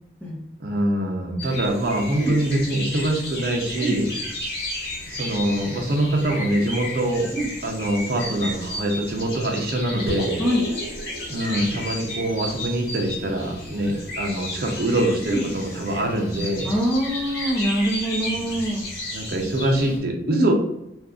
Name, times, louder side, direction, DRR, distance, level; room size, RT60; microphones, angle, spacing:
voice 1, 0.6-4.1 5.1-7.3 7.6-10.4 11.3-16.7 18.3-18.8 19.1-20.5, right 1 dB, 55° right, 2 dB, 0.6 m, -24 dB
sound 1, 1.4-20.0, left 1 dB, 65° left, 1.1 m, -33 dB
sound 2, 10.1-14.8, right 1 dB, 35° right, 0.9 m, -36 dB
voice 2, 16.6-18.9 20.3-20.5, equal, 10° left, -5 dB, 0.8 m, -24 dB
2.7 x 2.4 x 3.5 m, 0.82 s
head